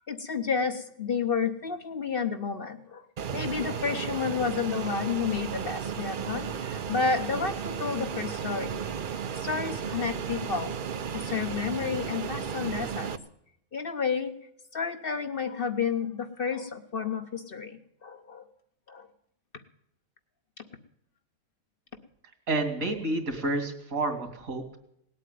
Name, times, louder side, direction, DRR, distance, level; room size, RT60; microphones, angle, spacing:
voice 1, 0.1-3.0 3.3-8.8 9.3-10.8 11.1-13.2 13.7-14.3 14.7-18.5 18.9-19.1, left 5 dB, 45° left, 7 dB, 1.2 m, -31 dB
Fixed-wing aircraft airplane, 3.2-13.2, right 7 dB, 50° right, 0.7 m, -34 dB
voice 2, 22.5-24.8, right 2 dB, 75° right, 4 dB, 2.9 m, -29 dB
18.5 x 8.4 x 9.4 m, 0.73 s
omnidirectional pair, 1.4 m